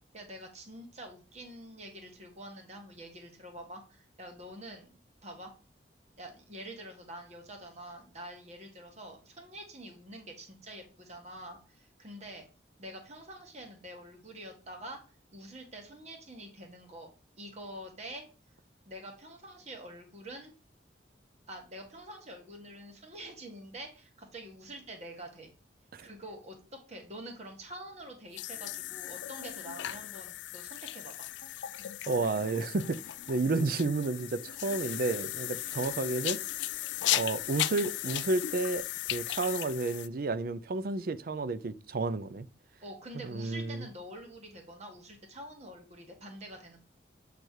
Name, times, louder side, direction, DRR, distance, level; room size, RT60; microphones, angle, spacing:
voice 1, 0.1-5.5 6.1-12.5 12.8-15.0 15.3-17.1 17.4-18.3 18.9-20.5 21.5-25.5 26.0-31.3 42.8-46.8, right 1 dB, 40° right, 1.6 m, -46 dB
sound 1, 28.3-40.1, left 13 dB, 85° left, 0.4 m, -36 dB
voice 2, 32.1-33.0 33.3-36.4 37.1-38.8 39.1-42.5 43.2-43.9, right 3 dB, 55° right, 0.5 m, -31 dB
7.9 x 3.4 x 4.5 m
head